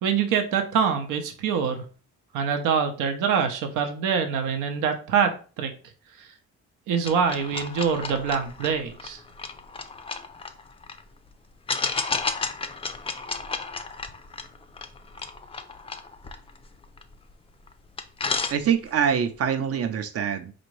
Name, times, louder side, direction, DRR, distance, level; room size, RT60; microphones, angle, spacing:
voice 1, 0.0-1.8 2.3-5.7 6.2-6.3 6.9-9.2, right 6 dB, 85° right, 6 dB, 0.7 m, -25 dB
sound 1, 7.0-11.0 11.7-17.3 17.7-17.8 18.0-19.1, left 4 dB, 20° left, 0.4 m, -33 dB
voice 2, 18.5-20.5, right 8 dB, 50° right, 9 dB, 0.5 m, -24 dB
4.2 x 2.6 x 3.1 m, 0.37 s
cardioid pair, 90°, 30 cm